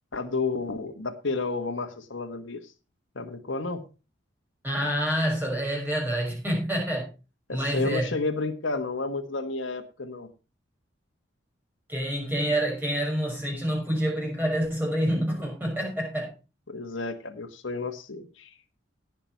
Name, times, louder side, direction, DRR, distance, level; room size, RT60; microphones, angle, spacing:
voice 1, 0.1-2.7 3.1-3.8 7.5-10.3 16.7-18.5, left 3 dB, 70° left, 5 dB, 1.4 m, -31 dB
voice 2, 4.6-7.1 7.5-8.1 11.9-16.3, equal, 10° right, -2 dB, 6.0 m, -27 dB
17.5 x 6.0 x 4.5 m, 0.31 s
head